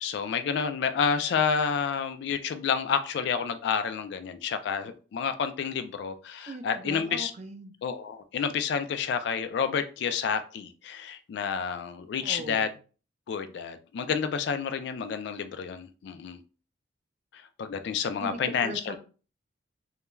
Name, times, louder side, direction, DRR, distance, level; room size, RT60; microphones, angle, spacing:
voice 1, 0.0-7.3 7.8-12.7 13.3-16.4 17.6-19.0, left 6 dB, 65° left, 10 dB, 0.3 m, -29 dB
voice 2, 6.5-7.7 12.2-12.7 18.2-19.0, right 2 dB, 35° right, 6 dB, 0.4 m, -39 dB
2.3 x 2.2 x 3.0 m, 0.36 s
head